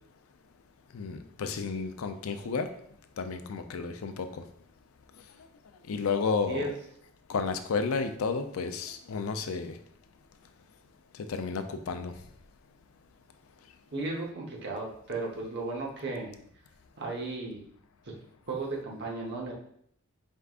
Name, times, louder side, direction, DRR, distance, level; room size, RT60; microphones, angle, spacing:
voice 1, 0.9-2.7 3.2-4.4 5.9-6.7 7.3-9.8 11.2-12.1, left 4 dB, 85° left, 8 dB, 0.4 m, -32 dB
voice 2, 13.9-16.3 17.0-17.6 18.0-18.2 18.5-19.5, right 3 dB, 55° right, 0 dB, 0.9 m, -35 dB
4.5 x 3.5 x 2.4 m, 0.66 s
head